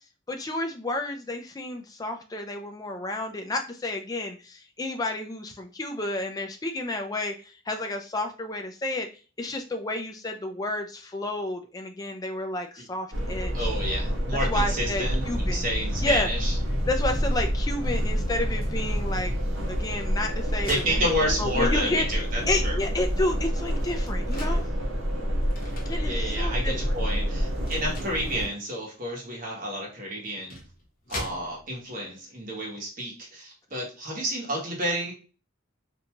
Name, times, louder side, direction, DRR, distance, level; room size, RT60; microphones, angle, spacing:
voice 1, 0.3-9.1 9.4-13.7 14.5-15.7 16.0-16.3 16.9-19.3 19.7-22.0 22.5-24.6 25.9-26.7, left 2 dB, 20° left, 5 dB, 0.3 m, -31 dB
sound 1, 13.1-28.5, equal, 85° right, 1.0 m, -28 dB
voice 2, 13.5-16.5 20.7-22.8 26.0-30.6 31.1-35.1, equal, 45° right, -2 dB, 1.0 m, -30 dB
sound 2, 18.6-18.8 19.8-21.7 22.3-22.4 22.7-24.6 25.5-26.0 26.5-26.7 27.5-28.3 29.6-29.7 30.3-31.9, left 1 dB, 45° left, 0.8 m, -41 dB
2.6 x 2.2 x 2.9 m, 0.36 s
head